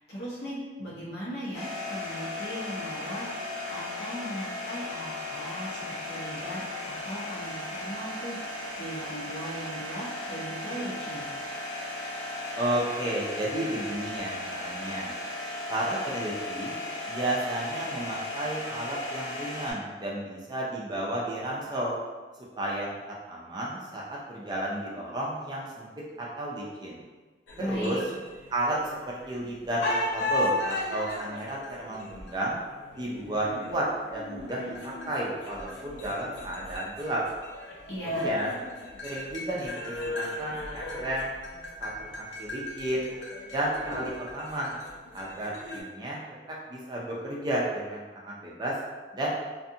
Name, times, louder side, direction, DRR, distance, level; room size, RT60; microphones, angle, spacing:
voice 1, 0.0-11.3 27.6-28.0 37.9-38.3, equal, 65° left, -7 dB, 0.9 m, -38 dB
sound 1, 1.5-19.7, left 2 dB, 25° left, 0.9 m, -36 dB
voice 2, 12.6-15.2 15.7-16.7 17.1-22.0 22.6-22.9 23.3-25.9 26.2-27.1 27.6-28.0 28.5-32.6 32.9-37.2 38.0-38.5 39.0-41.3 41.8-43.2 43.5-44.8 45.1-46.2 46.5-48.7 49.1-49.3, right 1 dB, 25° right, -5 dB, 0.4 m, -32 dB
sound 2, 27.5-29.4 29.8-45.8, left 1 dB, 90° left, 0.6 m, -36 dB
2.5 x 2.4 x 2.6 m, 1.3 s
head